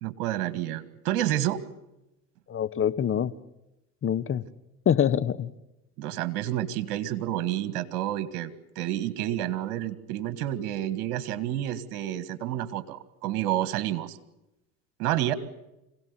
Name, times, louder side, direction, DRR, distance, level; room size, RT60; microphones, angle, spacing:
voice 1, 0.0-1.6 6.0-14.2 15.0-15.3, right 13 dB, 65° right, 14 dB, 1.8 m, -29 dB
voice 2, 2.5-3.3 4.0-4.4 4.9-5.5, left 9 dB, 30° left, 13 dB, 1.1 m, -25 dB
26.0 x 17.5 x 9.7 m, 0.92 s
hypercardioid pair, 90°, 44 cm